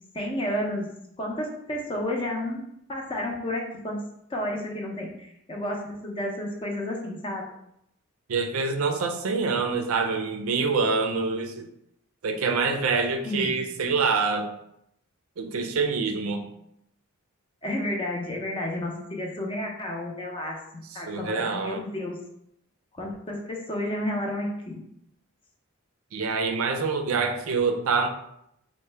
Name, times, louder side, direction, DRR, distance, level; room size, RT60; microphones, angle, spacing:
voice 1, 0.1-0.9 1.2-2.6 2.9-4.0 4.3-7.5 13.3-13.5 17.6-22.2 23.0-24.8, left 1 dB, 25° left, 0 dB, 0.5 m, -31 dB
voice 2, 8.3-11.7 12.2-14.5 15.4-16.4 20.9-21.8 26.1-28.1, right 4 dB, 80° right, 5 dB, 0.4 m, -26 dB
4.3 x 2.1 x 3.2 m, 0.76 s
head